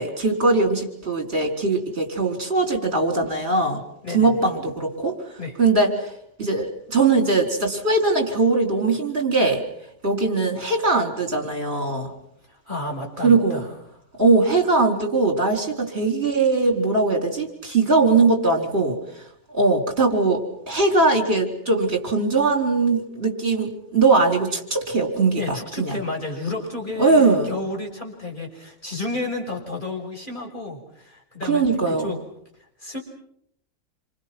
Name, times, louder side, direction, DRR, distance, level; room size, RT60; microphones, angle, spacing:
voice 1, 0.0-3.8 4.1-5.2 5.6-6.1 6.4-9.6 10.0-12.1 13.2-13.6 14.2-19.2 19.5-26.0 27.0-27.5 31.4-32.1, right 3 dB, 45° right, 4 dB, 4.6 m, -20 dB
voice 2, 4.0-4.4 5.4-5.6 12.5-13.7 25.4-32.2 32.8-33.0, left 2 dB, 30° left, 0 dB, 6.1 m, -31 dB
27.5 x 27.0 x 6.1 m, 0.71 s
omnidirectional pair, 1.6 m